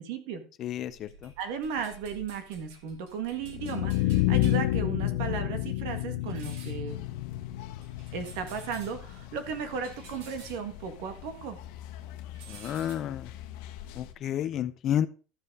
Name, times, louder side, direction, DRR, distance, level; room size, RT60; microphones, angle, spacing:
voice 1, 0.0-0.4 1.4-7.0 8.1-11.6, right 6 dB, 65° right, 8 dB, 1.8 m, -35 dB
voice 2, 0.6-1.3 12.5-13.3 14.0-15.1, left 10 dB, 30° left, 14 dB, 0.5 m, -31 dB
sound 1, 0.9-11.7 12.0-12.9, right 3 dB, 85° right, 4.2 m, -52 dB
sound 2, 3.4-9.4, left 16 dB, 85° left, 0.7 m, -29 dB
sound 3, 6.9-14.1, left 11 dB, 60° left, 1.2 m, -46 dB
13.0 x 5.2 x 4.8 m, 0.36 s
cardioid pair, 175°, 0 cm